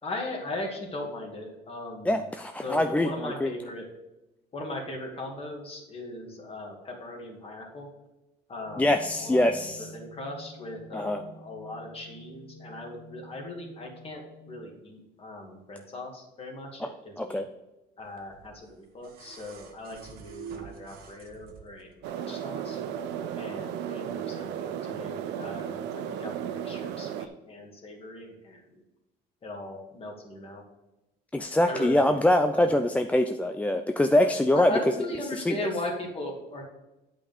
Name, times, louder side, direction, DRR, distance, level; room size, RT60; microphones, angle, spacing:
voice 1, 0.0-2.2 2.6-3.9 4.5-7.9 8.5-17.4 18.0-22.8 23.3-28.8 29.4-30.6 31.6-32.1 32.5-32.8 34.5-36.6, left 1 dB, 35° left, 1 dB, 2.3 m, -38 dB
voice 2, 2.1-3.5 8.8-9.9 10.9-11.2 16.8-16.9 17.2-17.5 31.3-34.7 35.5-35.6, left 1 dB, 10° left, 7 dB, 0.4 m, -24 dB
sound 1, 8.6-14.6, equal, 70° left, 1.5 m, -48 dB
sound 2, 18.2-21.9 23.2-23.3, right 7 dB, 65° right, 1.3 m, -46 dB
sound 3, 22.0-27.3, right 9 dB, 90° right, 0.7 m, -34 dB
8.7 x 5.2 x 5.3 m, 0.98 s
cardioid pair, 110°, 17 cm